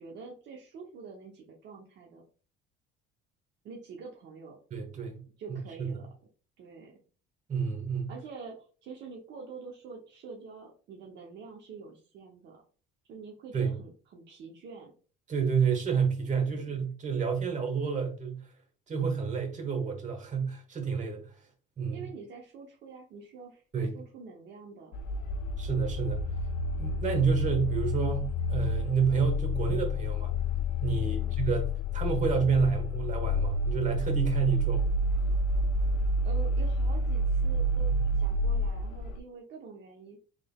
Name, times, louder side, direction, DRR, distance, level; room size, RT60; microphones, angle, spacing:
voice 1, 0.0-2.2 3.6-4.6 5.4-6.1 6.6-6.9 8.1-12.6 13.1-14.9 16.4-16.7 21.9-24.9 30.9-31.3 36.2-40.2, right 4 dB, 60° right, 0.8 m, -46 dB
voice 2, 4.7-5.2 5.8-5.9 7.5-8.1 13.5-13.8 15.3-18.5 18.9-21.3 21.8-22.1 23.7-24.0 25.6-26.2 26.8-30.3 30.8-34.9, right 6 dB, 35° right, 1.2 m, -29 dB
sound 1, 24.9-39.2, left 1 dB, 80° left, 0.4 m, -29 dB
3.6 x 3.3 x 2.3 m
supercardioid pair, 90°, 20 cm